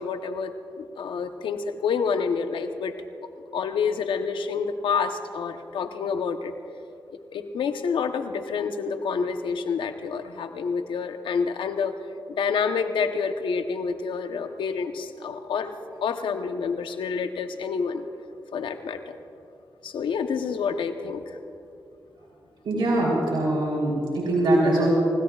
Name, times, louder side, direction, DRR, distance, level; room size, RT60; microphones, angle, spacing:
voice 1, 0.0-2.9 3.5-6.5 7.3-12.0 12.3-15.7 16.0-18.1 18.5-19.2 19.8-21.4, left 5 dB, 85° left, 7 dB, 1.0 m, -28 dB
voice 2, 22.6-24.9, right 1 dB, 80° right, -4 dB, 3.6 m, -22 dB
29.0 x 16.5 x 2.4 m, 2.6 s
cardioid pair, 50°, 8 cm